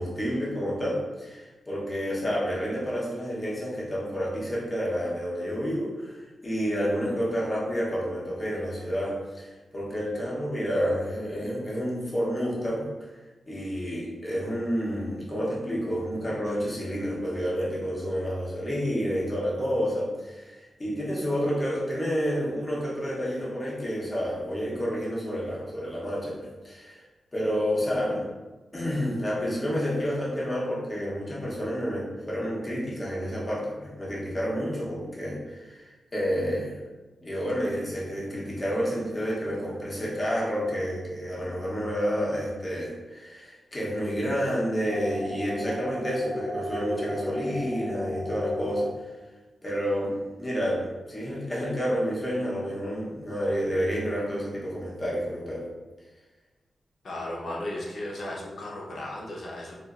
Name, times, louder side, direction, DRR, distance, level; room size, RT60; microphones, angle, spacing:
voice 1, 0.0-6.2 6.4-12.9 13.5-27.0 27.3-28.3 28.7-36.8 37.2-49.1 49.6-55.7, equal, 20° left, -5 dB, 0.8 m, -29 dB
sound 1, 44.9-48.9, left 1 dB, 5° right, 0.4 m, -33 dB
voice 2, 57.0-59.7, left 1 dB, 55° left, -3 dB, 0.7 m, -35 dB
4.0 x 2.4 x 2.4 m, 1.2 s
wide cardioid pair, 170°, 0 cm